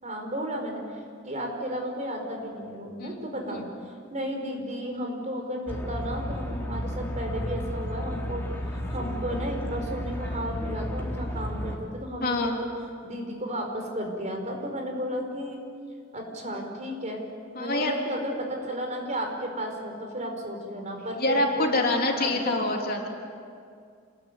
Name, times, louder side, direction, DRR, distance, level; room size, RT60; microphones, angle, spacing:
voice 1, 0.0-3.7 4.1-12.7 13.0-15.6 16.1-17.2 17.6-23.0, equal, 35° right, 3 dB, 5.1 m, -33 dB
voice 2, 3.0-3.6 12.2-12.6 17.5-17.9 21.2-23.1, left 2 dB, 50° left, 1 dB, 3.3 m, -26 dB
sound 1, 5.7-11.8, equal, 10° left, 3.6 m, -33 dB
27.5 x 21.5 x 9.4 m, 2.2 s
head